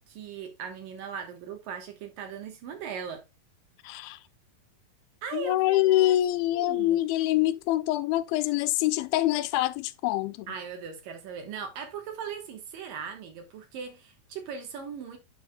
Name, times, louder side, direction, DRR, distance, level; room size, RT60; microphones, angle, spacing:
voice 1, 0.1-3.2 5.2-6.2 6.5-7.0 10.5-15.2, right 6 dB, 70° right, 2.9 m, -39 dB
voice 2, 3.8-4.2 5.3-10.5, left 15 dB, 85° left, 2.4 m, -25 dB
9.2 x 7.1 x 2.3 m
omnidirectional pair, 4.2 m